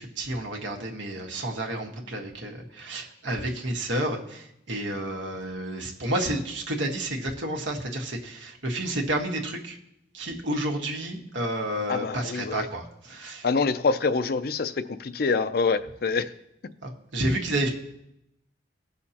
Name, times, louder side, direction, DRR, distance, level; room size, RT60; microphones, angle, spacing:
voice 1, 0.0-9.8 10.1-13.5 16.8-17.7, right 1 dB, 85° right, 2 dB, 1.5 m, -30 dB
voice 2, 11.9-12.7 13.4-16.3, left 4 dB, 55° left, 12 dB, 0.4 m, -26 dB
18.0 x 6.4 x 2.9 m, 0.80 s
head